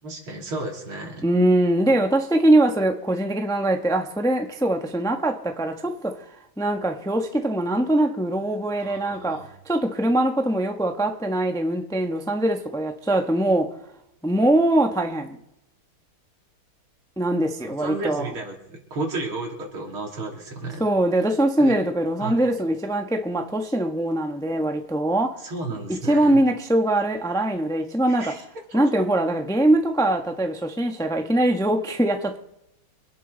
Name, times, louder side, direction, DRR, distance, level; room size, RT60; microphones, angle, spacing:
voice 1, 0.0-1.2 8.8-9.5 17.6-18.6 18.9-20.8 21.6-21.8 22.2-22.4 25.4-26.4 28.1-28.4 28.8-28.9, right 2 dB, 80° right, 3.8 m, -33 dB
voice 2, 1.2-6.2 6.6-13.7 14.2-15.4 17.2-18.3 20.8-25.4 26.1-28.3 28.7-32.4, right 1 dB, 5° left, 0.8 m, -22 dB
25.5 x 10.5 x 4.0 m
omnidirectional pair, 2.3 m